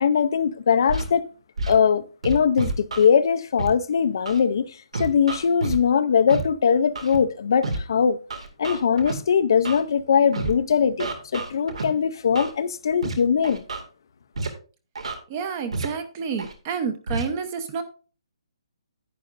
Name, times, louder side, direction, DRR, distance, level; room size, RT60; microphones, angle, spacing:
voice 1, 0.0-1.3 1.7-8.2 8.6-13.6, left 7 dB, 45° left, 0.5 m, -21 dB
Scratching (performance technique), 0.9-1.1 1.6-1.7 2.2-3.1 3.6-3.7 4.3-4.4 4.9-5.8 6.3-6.4 7.0-7.2 7.6-7.8 8.3-9.1 9.7-9.8 10.3-10.5 11.0-11.8 12.4-12.5 13.0-13.1 13.4-13.8 14.4-14.5 15.0-15.1 15.7-15.9 16.4-16.5 17.1-17.2, right 3 dB, 85° right, 2.1 m, -29 dB
voice 2, 15.3-17.8, right 6 dB, 20° right, 0.8 m, -29 dB
10.5 x 9.6 x 2.5 m
hypercardioid pair, 175°, 3 cm